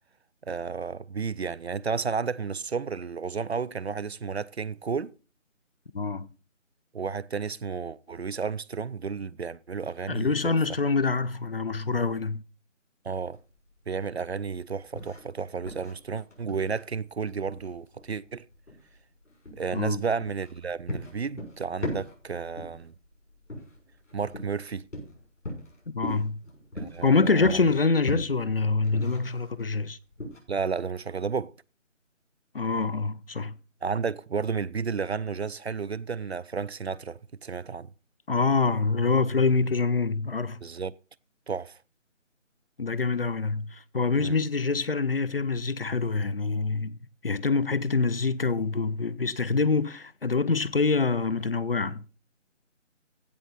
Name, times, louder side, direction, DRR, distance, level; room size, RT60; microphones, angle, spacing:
voice 1, 0.5-5.1 6.9-10.5 13.0-13.4 13.9-18.4 19.5-22.9 24.1-24.9 26.8-27.5 30.5-31.5 33.8-37.9 40.6-40.9 41.5-41.8 44.1-44.4, right 5 dB, 55° right, 0.5 m, -32 dB
voice 2, 5.9-6.3 10.1-12.4 19.7-20.0 25.9-26.4 27.0-30.0 32.5-33.6 38.3-40.6 42.8-47.0 47.2-52.0, left 4 dB, 50° left, 0.6 m, -25 dB
sound 1, 13.3-30.4, left 1 dB, 75° left, 6.5 m, -40 dB
16.0 x 6.0 x 4.1 m
figure-of-eight pair, 160°, 38 cm